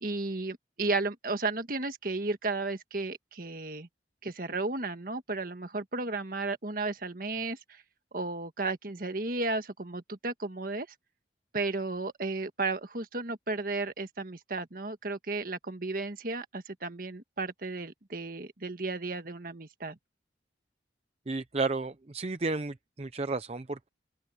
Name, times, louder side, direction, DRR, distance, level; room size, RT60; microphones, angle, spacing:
voice 1, 0.0-3.9 4.2-7.8 8.1-10.9 11.5-20.0, right 3 dB, 50° right, 1.6 m, -34 dB
voice 2, 21.3-23.9, right 3 dB, 35° right, 0.6 m, -32 dB
open air
head